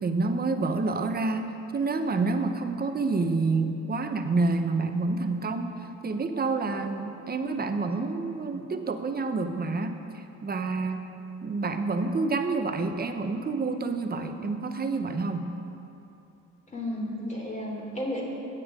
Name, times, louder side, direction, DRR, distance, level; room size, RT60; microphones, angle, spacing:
voice 1, 0.0-1.5 1.7-11.0 11.4-15.5, right 3 dB, 30° right, 7 dB, 0.9 m, -28 dB
voice 2, 16.7-18.2, left 1 dB, 25° left, -2 dB, 3.0 m, -33 dB
15.5 x 9.4 x 3.7 m, 2.8 s
cardioid pair, 90°, 30 cm